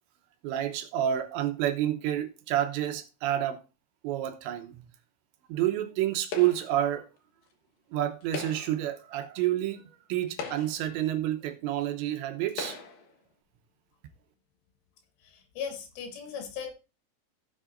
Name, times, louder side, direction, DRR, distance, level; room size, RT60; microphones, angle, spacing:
voice 1, 0.4-3.6 4.0-4.8 5.5-7.0 7.9-12.8, right 12 dB, 75° right, 3.0 m, -29 dB
sound 1, 6.3-6.8 8.2-8.9 9.7-9.8 10.3-11.0 11.8-11.9 12.5-13.1, left 5 dB, 65° left, 2.4 m, -39 dB
voice 2, 15.6-16.7, left 7 dB, 90° left, 4.2 m, -37 dB
16.5 x 7.3 x 2.6 m
omnidirectional pair, 5.5 m